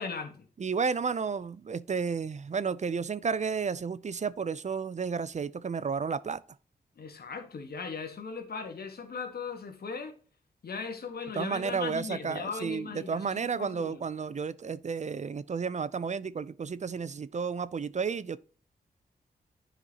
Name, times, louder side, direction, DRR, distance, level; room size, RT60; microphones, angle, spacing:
voice 1, 0.0-0.5 7.0-10.1 10.6-14.0, left 5 dB, 70° left, 1.4 m, -38 dB
voice 2, 0.6-6.4 11.4-18.4, right 5 dB, 45° right, 0.5 m, -32 dB
9.7 x 5.0 x 2.9 m
cardioid pair, 50°, 17 cm